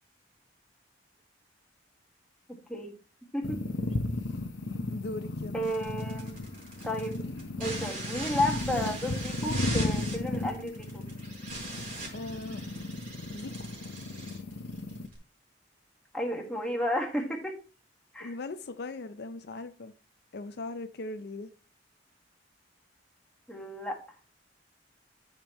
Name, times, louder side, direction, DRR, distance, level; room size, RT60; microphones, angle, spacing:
voice 1, 2.5-3.0 3.3-3.6 5.5-6.4 6.8-7.2 7.6-11.0 16.1-17.6 18.1-18.3 23.5-24.0, left 1 dB, 5° left, 1.6 m, -32 dB
sound 1, 3.4-15.1, left 2 dB, 90° left, 1.0 m, -34 dB
voice 2, 4.9-5.6 12.1-12.6 13.3-13.7 18.2-19.9 20.3-21.5, left 2 dB, 60° left, 0.5 m, -39 dB
sound 2, 5.6-15.2, right 2 dB, 50° right, 4.3 m, -41 dB
13.5 x 5.3 x 3.0 m
head